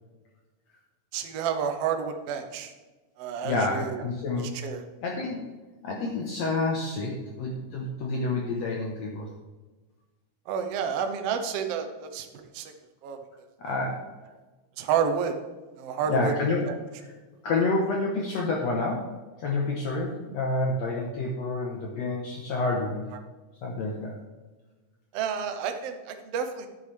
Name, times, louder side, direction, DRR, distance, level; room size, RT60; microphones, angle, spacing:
voice 1, 1.1-2.7 3.2-4.0 4.3-4.9 10.5-12.3 12.5-12.7 13.0-13.2 14.8-15.3 15.8-16.3 16.7-16.8 25.1-26.7, right 7 dB, 70° right, 6 dB, 1.6 m, -30 dB
voice 2, 3.4-4.5 5.0-5.4 5.8-9.3 13.6-14.0 16.1-16.6 17.4-19.1 19.4-23.1 23.6-24.1, left 3 dB, 65° left, -1 dB, 2.0 m, -28 dB
9.9 x 9.7 x 3.4 m, 1.3 s
omnidirectional pair, 3.8 m